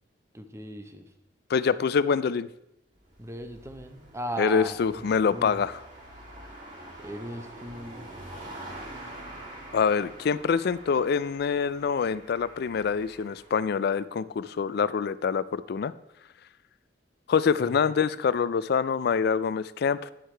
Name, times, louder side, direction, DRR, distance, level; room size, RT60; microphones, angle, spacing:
voice 1, 0.3-1.1 3.2-5.1 5.3-5.6 7.0-8.1 17.6-17.7, right 1 dB, 15° right, 7 dB, 0.8 m, -37 dB
voice 2, 1.5-2.5 4.4-5.8 9.7-15.9 17.3-20.1, left 6 dB, 60° left, 17 dB, 0.4 m, -25 dB
sound 1, 3.0-13.6, right 1 dB, 45° right, 2.3 m, -45 dB
10.0 x 6.5 x 4.5 m, 0.86 s
head